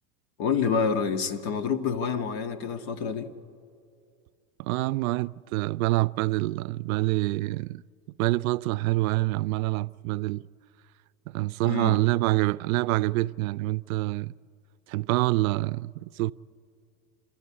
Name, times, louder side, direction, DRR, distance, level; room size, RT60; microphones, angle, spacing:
voice 1, 0.4-3.3 11.6-12.0, left 6 dB, 60° left, 1.7 m, -27 dB
voice 2, 4.6-7.8 8.2-10.5 11.3-14.3 14.9-16.3, right 19 dB, 85° right, 0.5 m, -26 dB
28.5 x 13.5 x 8.5 m
supercardioid pair, 115°, 41 cm